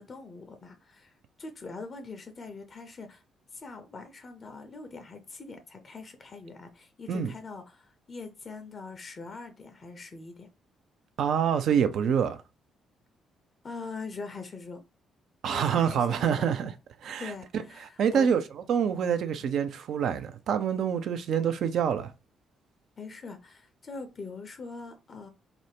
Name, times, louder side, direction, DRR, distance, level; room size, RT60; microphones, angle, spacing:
voice 1, 0.0-3.2 3.5-10.5 13.6-14.8 15.5-16.4 17.2-18.3 19.3-19.5 23.0-25.3, left 4 dB, 40° left, 0.4 m, -42 dB
voice 2, 11.2-12.4 15.4-16.7 17.0-17.3 18.0-18.4 18.7-22.1, right 8 dB, 60° right, 0.3 m, -26 dB
2.4 x 2.0 x 3.3 m
figure-of-eight pair, 40°, 0 cm